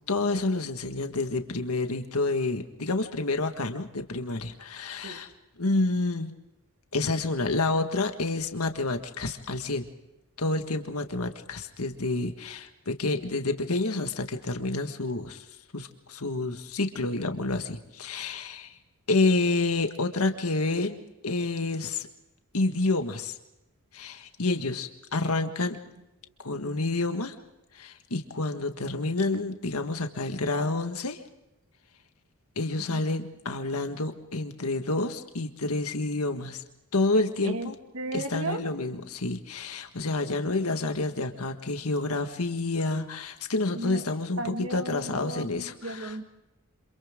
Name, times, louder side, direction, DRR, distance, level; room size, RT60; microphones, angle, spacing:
voice 1, 0.1-5.3 5.6-6.3 6.9-9.9 10.4-15.4 15.7-18.8 19.1-21.0 21.2-22.1 22.5-23.4 23.9-25.8 26.4-27.3 27.7-31.2 32.5-36.6 36.9-37.7 38.1-46.2, left 2 dB, 85° left, 6 dB, 1.7 m, -29 dB
voice 2, 37.4-38.6 43.8-44.0 44.4-46.2, right 2 dB, 70° right, 5 dB, 2.1 m, -35 dB
28.5 x 27.0 x 3.8 m, 0.93 s
head